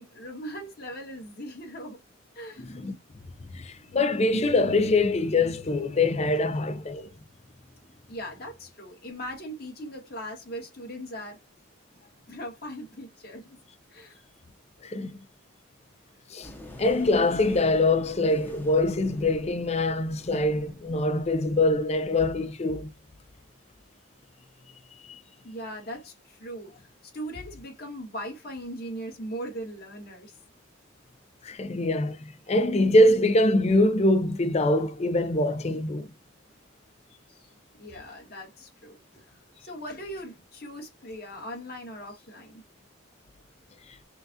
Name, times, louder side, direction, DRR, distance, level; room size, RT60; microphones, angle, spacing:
voice 1, 0.0-2.0 2.3-2.7 8.1-11.4 12.3-13.6 13.9-14.2 25.4-30.3 37.3-37.5 37.8-42.6, equal, 50° left, 1.7 m, -39 dB
voice 2, 2.6-3.0 3.4-7.1 14.8-15.2 16.3-16.5 16.8-22.9 25.1-25.2 31.4-36.1, left 2 dB, 30° left, 0.5 m, -24 dB
sound 1, 16.4-22.0, left 1 dB, 10° left, 0.8 m, -46 dB
5.6 x 2.4 x 2.7 m
head